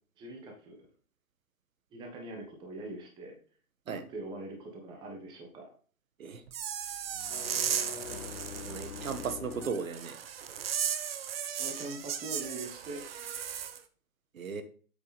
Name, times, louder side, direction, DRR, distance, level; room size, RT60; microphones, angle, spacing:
voice 1, 0.2-0.8 1.9-3.4 3.8-5.7 11.6-13.0, right 2 dB, 10° right, 3 dB, 1.1 m, -42 dB
sound 1, 6.5-13.8, right 9 dB, 45° right, 0.9 m, -36 dB
sound 2, 7.1-9.9, left 8 dB, 75° left, 0.8 m, -44 dB
voice 2, 8.6-10.2 14.3-14.6, right 5 dB, 65° right, 10 dB, 1.5 m, -36 dB
7.7 x 6.8 x 4.1 m, 0.41 s
hypercardioid pair, 150°, 43 cm